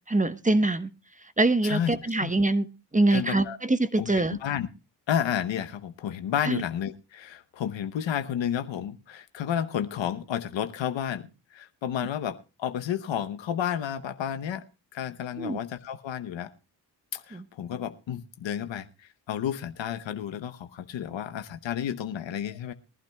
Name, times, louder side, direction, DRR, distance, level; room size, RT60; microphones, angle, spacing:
voice 1, 0.1-0.9 1.4-2.6 2.9-4.4 6.4-6.6 15.4-15.6 17.3-17.4, right 2 dB, 15° right, 12 dB, 1.0 m, -24 dB
voice 2, 1.6-2.3 3.1-3.6 4.0-4.1 4.4-4.7 5.1-11.3 11.5-14.6 14.9-16.5 17.1-22.7, left 9 dB, 80° left, 10 dB, 1.0 m, -31 dB
22.5 x 11.5 x 2.3 m, 0.31 s
supercardioid pair, 45°, 44 cm